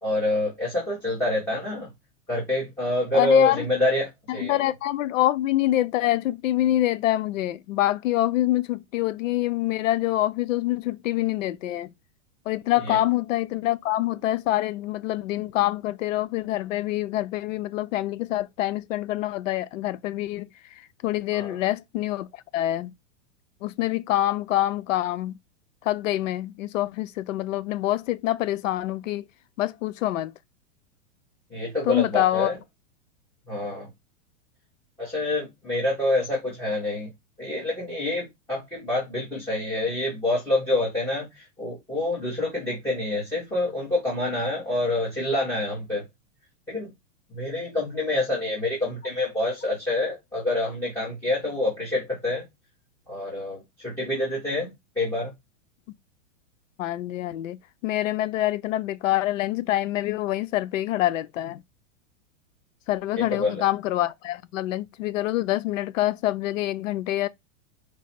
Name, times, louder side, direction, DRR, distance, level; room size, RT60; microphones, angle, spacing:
voice 1, 0.0-1.9 2.3-4.6 12.8-13.0 21.3-21.6 31.5-32.6 33.5-33.9 35.0-37.1 37.4-46.0 46.7-46.9 47.3-52.5 53.1-54.7 54.9-55.3 63.1-63.6, left 2 dB, 5° left, 0.9 m, -27 dB
voice 2, 3.1-3.7 4.3-11.9 12.5-22.9 23.6-25.4 25.8-29.3 29.6-30.3 31.9-32.5 56.8-61.6 62.9-67.3, left 15 dB, 85° left, 0.6 m, -26 dB
4.7 x 2.0 x 4.1 m
supercardioid pair, 175°, 38 cm